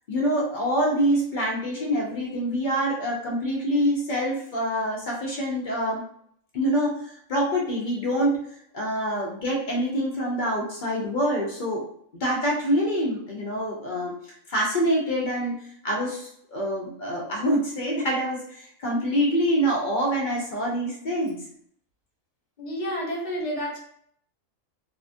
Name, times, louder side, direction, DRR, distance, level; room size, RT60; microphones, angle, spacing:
voice 1, 0.1-6.0 6.5-8.3 8.7-11.8 12.2-21.4, equal, 60° left, -2 dB, 0.5 m, -26 dB
voice 2, 22.6-23.8, equal, 35° left, -5 dB, 1.0 m, -30 dB
2.8 x 2.3 x 2.5 m, 0.66 s
omnidirectional pair, 1.4 m